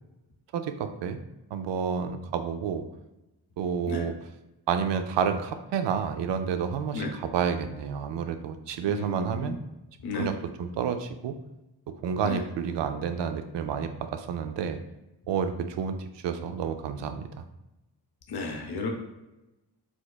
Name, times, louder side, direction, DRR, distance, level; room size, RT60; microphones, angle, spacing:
voice 1, 0.5-1.2 1.5-2.9 3.6-4.2 4.7-9.6 10.1-11.4 12.0-14.8 15.3-16.0 16.2-17.2, right 7 dB, 65° right, 8 dB, 0.5 m, -30 dB
voice 2, 8.9-9.6 10.0-10.3 12.2-12.4 18.3-18.9, left 3 dB, 55° left, 2 dB, 0.7 m, -33 dB
4.5 x 2.2 x 2.2 m, 0.96 s
supercardioid pair, 45°, 46 cm